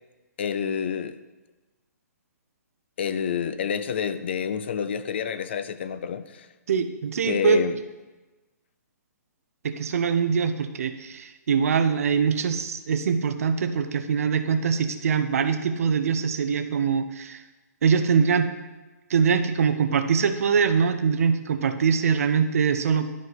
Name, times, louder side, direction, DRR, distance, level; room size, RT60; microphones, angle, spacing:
voice 1, 0.4-1.2 3.0-6.5 7.3-7.8, left 7 dB, 40° left, 13 dB, 0.3 m, -28 dB
voice 2, 6.7-7.6 9.6-17.4 17.8-18.5 19.1-23.1, right 6 dB, 55° right, 9 dB, 0.7 m, -23 dB
11.0 x 4.9 x 4.1 m, 1.2 s
hypercardioid pair, 170°, 9 cm